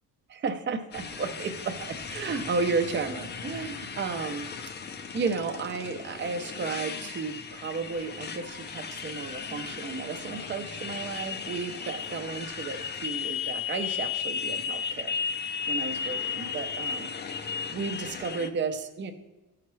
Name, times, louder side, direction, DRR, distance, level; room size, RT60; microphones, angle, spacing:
voice 1, 0.3-4.5 5.1-17.1 17.7-19.1, right 4 dB, 30° right, 6 dB, 0.6 m, -33 dB
Motorcycle, 0.9-18.5, left 6 dB, 30° left, 0.5 m, -35 dB
15.0 x 5.8 x 3.2 m, 1.1 s
wide cardioid pair, 175°, 36 cm